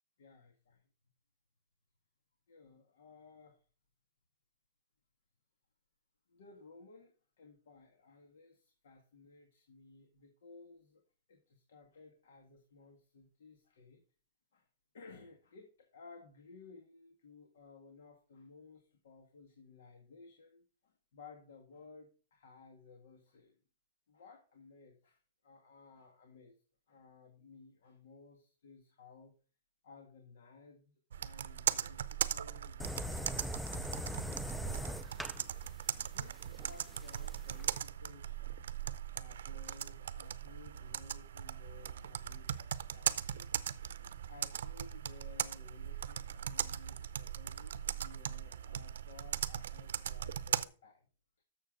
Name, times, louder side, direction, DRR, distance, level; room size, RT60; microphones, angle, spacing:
voice 1, 0.2-0.8 2.5-3.6 6.3-11.0 11.3-14.0 14.5-14.6 14.9-23.5 24.1-25.2 25.4-26.5 26.9-29.3 29.8-34.9 36.0-38.8 39.1-43.5 44.3-51.1, left 4 dB, 80° left, 4 dB, 1.8 m, -57 dB
Computer keyboard, 31.1-50.7, right 9 dB, 85° right, 0.6 m, -39 dB
sound 1, 32.8-37.8, left 1 dB, ahead, 0.4 m, -42 dB
11.5 x 7.1 x 3.8 m, 0.37 s
supercardioid pair, 155°, 0 cm